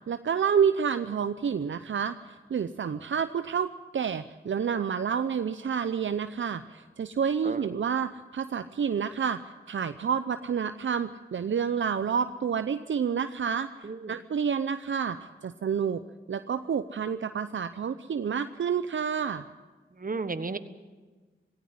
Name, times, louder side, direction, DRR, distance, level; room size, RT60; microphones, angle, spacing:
voice 1, 0.1-16.0 16.3-19.4, right 7 dB, 70° right, 10 dB, 0.7 m, -29 dB
voice 2, 20.0-20.6, right 4 dB, 40° right, 11 dB, 1.4 m, -33 dB
17.0 x 16.0 x 9.8 m, 1.3 s
cardioid pair, 40°, 21 cm